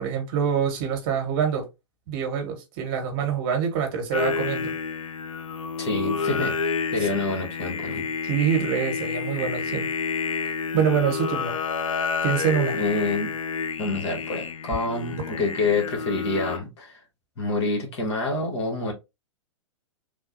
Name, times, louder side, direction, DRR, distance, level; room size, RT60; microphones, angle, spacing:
voice 1, 0.0-1.6 2.1-4.7 7.0-7.1 8.2-9.9 10.7-11.6 12.2-12.8, right 7 dB, 45° right, 1.2 m, -25 dB
Singing, 4.1-16.6, left 5 dB, 85° left, 0.4 m, -29 dB
voice 2, 5.8-8.1 12.7-13.3 13.8-17.0 17.4-18.9, left 3 dB, 55° left, 1.5 m, -27 dB
3.4 x 2.2 x 2.6 m
hypercardioid pair, 110°, 16 cm